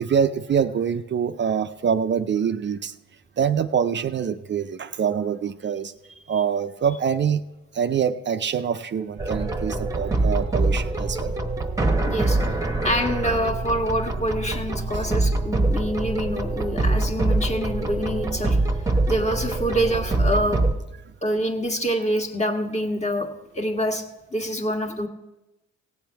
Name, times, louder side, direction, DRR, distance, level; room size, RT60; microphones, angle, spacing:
voice 1, 0.0-2.9 3.4-5.9 6.3-7.5 7.7-11.3 14.7-15.1, right 7 dB, 40° right, 10 dB, 0.5 m, -25 dB
sound 1, 9.2-20.7, right 2 dB, 10° right, 1.0 m, -24 dB
voice 2, 12.1-12.4 12.8-18.6 19.1-20.6 21.2-23.3 23.5-24.0 24.3-25.1, equal, 20° left, 3 dB, 1.5 m, -26 dB
17.5 x 7.6 x 4.6 m, 1.0 s
cardioid pair, 90°, 30 cm